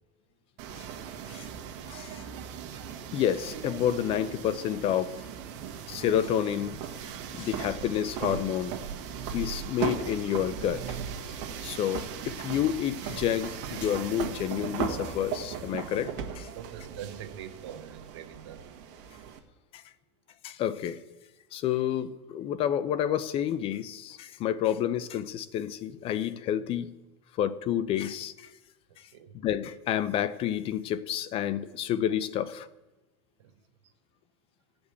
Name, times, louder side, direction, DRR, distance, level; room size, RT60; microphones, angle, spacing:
sound 1, 0.6-19.4, right 8 dB, 55° right, 1.6 m, -38 dB
voice 1, 1.9-2.2 3.1-5.3 5.9-6.8 7.3-8.8 9.3-11.0 11.6-16.5 19.7-19.8 20.4-21.0 21.5-26.9 27.4-28.5 29.4-32.7, left 10 dB, 40° left, 0.7 m, -29 dB
voice 2, 16.5-18.6 29.1-29.3 33.4-33.5, right 9 dB, 80° right, 1.3 m, -43 dB
15.5 x 5.2 x 8.3 m
supercardioid pair, 125°, 15 cm